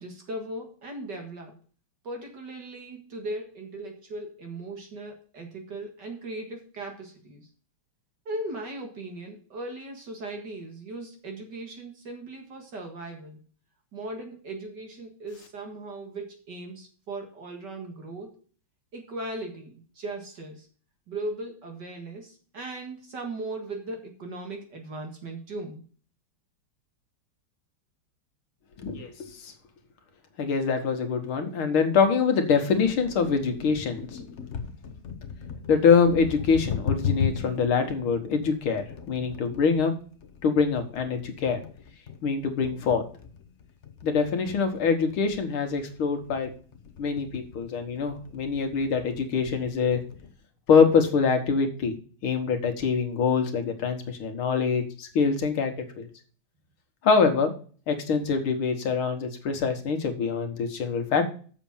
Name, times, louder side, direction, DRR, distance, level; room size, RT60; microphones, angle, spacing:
voice 1, 0.0-1.6 2.0-7.5 8.3-13.5 13.9-18.3 18.9-20.7 21.1-25.8, right 2 dB, 55° right, 3 dB, 2.3 m, -38 dB
voice 2, 28.8-29.5 30.4-34.1 35.7-39.9 40.4-41.6 42.2-43.0 44.0-46.5 47.0-50.0 50.7-51.9 52.2-56.1 57.0-57.5 57.9-61.3, left 5 dB, 80° left, 6 dB, 2.3 m, -24 dB
sound 1, 32.7-50.3, left 7 dB, 45° left, 1.0 m, -38 dB
7.4 x 6.8 x 7.1 m, 0.41 s
omnidirectional pair, 2.3 m